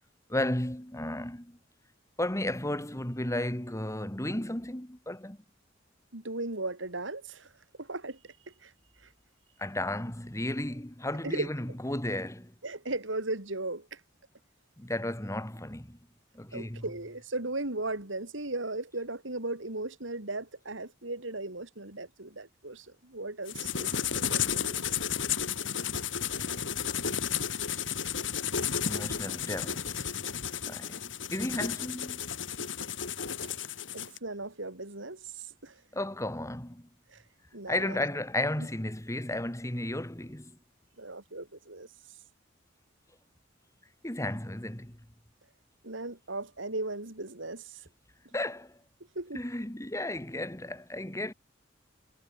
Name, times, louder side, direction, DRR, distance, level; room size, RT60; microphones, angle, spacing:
voice 1, 0.3-1.6 2.2-5.4 9.6-12.5 14.8-16.0 16.3-16.8 28.8-30.1 30.6-32.3 35.9-36.9 37.7-40.5 44.0-45.0 48.3-48.7 49.3-51.3, left 1 dB, 15° left, 2.8 m, -34 dB
voice 2, 6.1-7.5 7.8-8.7 9.0-9.1 11.2-11.5 12.6-14.0 16.5-24.0 24.3-24.8 33.9-35.8 37.1-37.2 37.5-38.0 38.6-38.7 41.0-41.9 45.8-47.9 49.2-49.4, right 2 dB, 75° right, 4.0 m, -37 dB
sound 1, 23.5-34.2, left 8 dB, 75° left, 4.3 m, -33 dB
head